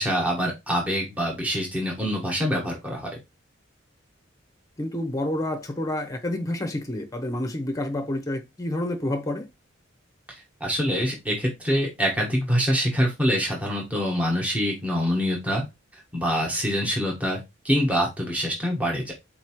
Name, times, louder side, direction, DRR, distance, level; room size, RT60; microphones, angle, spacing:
voice 1, 0.0-3.1 10.3-15.6 16.1-19.1, equal, 5° right, 1.3 m, -25 dB
voice 2, 4.8-9.5, left 1 dB, 20° left, 0.8 m, -29 dB
4.2 x 3.0 x 3.0 m
head